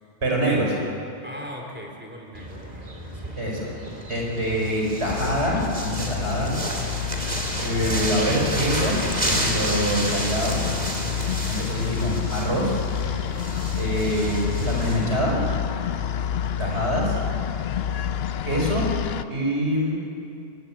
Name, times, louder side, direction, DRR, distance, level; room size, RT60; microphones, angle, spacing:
voice 1, 0.2-0.8 3.3-3.7 4.1-6.6 7.6-9.0 9.2-10.6 11.5-12.7 13.7-15.4 16.6-17.2 18.4-18.8 19.3-19.9, equal, 75° right, -1 dB, 5.1 m, -25 dB
voice 2, 1.2-3.4 7.1-7.5 11.2-11.7, equal, 10° right, 0 dB, 3.5 m, -41 dB
sound 1, 2.3-15.1, right 1 dB, 40° right, 3.1 m, -31 dB
sound 2, 5.0-19.2, left 9 dB, 65° left, 0.9 m, -29 dB
21.5 x 17.0 x 8.9 m, 2.6 s
omnidirectional pair, 1.1 m